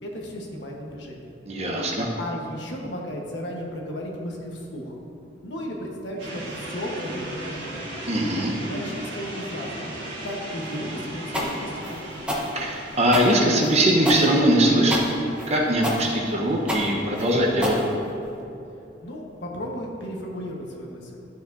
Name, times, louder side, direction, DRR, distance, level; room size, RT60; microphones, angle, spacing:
voice 1, 0.0-1.3 2.2-5.0 5.4-7.8 8.7-9.8 10.2-12.2 19.0-21.2, equal, 70° left, -1 dB, 1.2 m, -34 dB
voice 2, 1.5-2.1 8.1-8.5 12.5-17.8, right 1 dB, 35° right, -1 dB, 1.0 m, -21 dB
sound 1, 6.2-17.8, right 1 dB, 60° right, 1.7 m, -38 dB
sound 2, 11.3-18.4, equal, 5° right, 1.0 m, -29 dB
12.0 x 6.8 x 2.7 m, 2.7 s
head